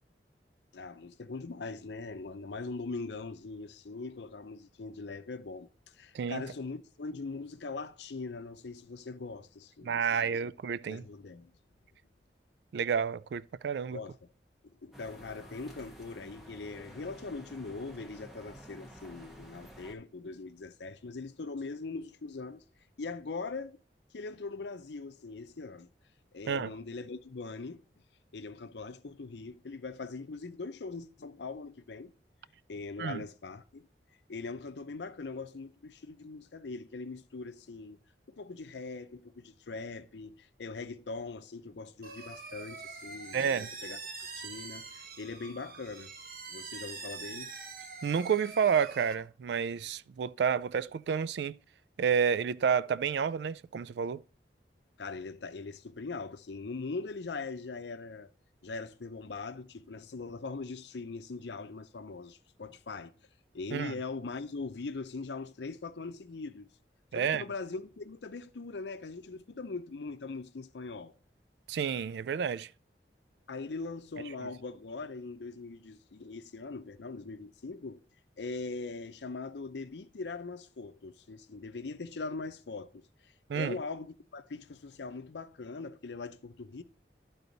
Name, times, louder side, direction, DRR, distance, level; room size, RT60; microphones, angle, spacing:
voice 1, 0.7-10.3 10.9-11.5 13.9-14.2 14.8-22.6 23.0-23.8 24.1-25.9 26.3-27.8 28.3-32.1 32.7-33.9 34.3-38.0 38.3-44.0 44.3-46.1 46.5-47.5 55.0-58.3 58.6-63.1 63.5-66.7 67.1-71.1 73.5-78.0 78.4-86.8, left 3 dB, 85° left, 0.6 m, -41 dB
voice 2, 9.8-11.0 12.7-14.0 26.5-26.7 33.0-33.2 43.3-43.7 48.0-51.6 52.0-54.2 63.7-63.9 67.1-67.4 71.7-72.7 83.5-83.8, right 7 dB, 75° right, 0.3 m, -30 dB
sound 1, 14.9-19.9, equal, ahead, 1.0 m, -51 dB
sound 2, 42.0-49.1, right 4 dB, 55° right, 1.0 m, -44 dB
11.5 x 4.0 x 3.9 m
head